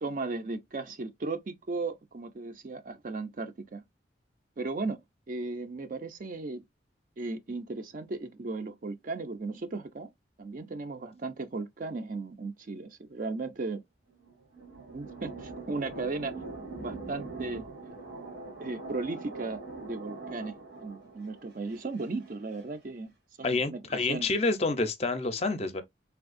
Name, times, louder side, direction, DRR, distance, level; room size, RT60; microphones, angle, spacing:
voice 1, 0.0-3.8 4.6-5.0 5.3-6.6 7.2-10.1 10.4-13.8 14.9-16.3 16.7-17.6 18.6-23.1 23.4-24.3, right 3 dB, 50° right, 0.5 m, -36 dB
sound 1, 14.1-22.6, right 3 dB, 85° right, 1.8 m, -43 dB
voice 2, 23.4-25.8, left 3 dB, 35° left, 0.5 m, -28 dB
3.4 x 2.7 x 2.5 m
head